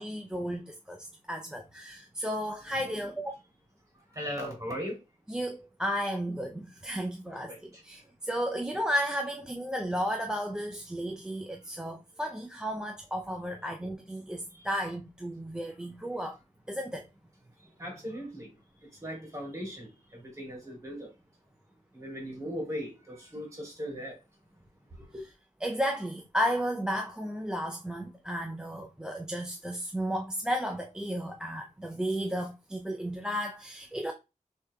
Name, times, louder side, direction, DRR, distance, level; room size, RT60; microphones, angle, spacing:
voice 1, 0.0-3.3 5.3-16.4 16.7-17.1 25.6-34.1, equal, 5° right, 0.5 m, -33 dB
voice 2, 4.2-5.0 7.5-7.6 17.8-18.5 19.0-19.9 20.4-21.1 21.9-24.1 25.1-25.2, equal, 25° right, 2.7 m, -37 dB
6.3 x 3.6 x 2.2 m
wide cardioid pair, 165°, 13 cm